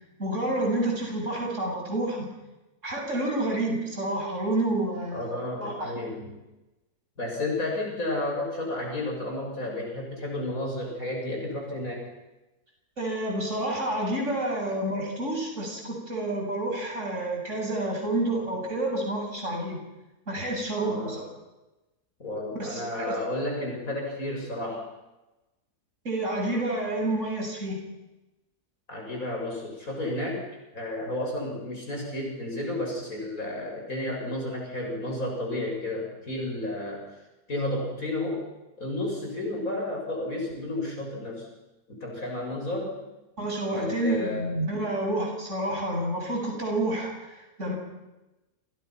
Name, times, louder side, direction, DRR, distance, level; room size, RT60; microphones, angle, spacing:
voice 1, 0.2-2.3 2.8-5.9 13.0-19.8 20.3-21.3 22.5-23.1 26.0-27.8 43.4-47.8, right 1 dB, 50° right, 0 dB, 8.1 m, -29 dB
voice 2, 5.1-6.4 7.2-12.1 20.8-21.2 22.2-24.9 28.9-30.5 30.7-37.2 37.5-38.5 38.8-41.5 41.9-43.1 43.7-44.5, left 1 dB, 55° left, 0 dB, 7.4 m, -32 dB
28.5 x 28.5 x 6.0 m, 1.0 s
omnidirectional pair, 1.7 m